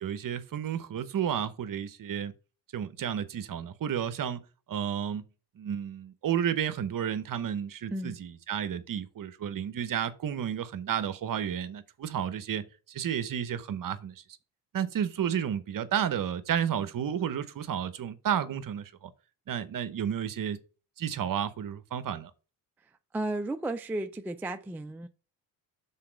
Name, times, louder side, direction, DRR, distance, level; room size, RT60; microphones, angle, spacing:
voice 1, 0.0-2.3 2.7-5.2 5.6-14.2 14.7-19.1 19.5-20.6 21.0-22.3, right 9 dB, 45° right, 0.9 m, -32 dB
voice 2, 23.1-25.1, right 2 dB, 5° right, 0.3 m, -33 dB
5.7 x 4.1 x 5.1 m
cardioid pair, 85°, 46 cm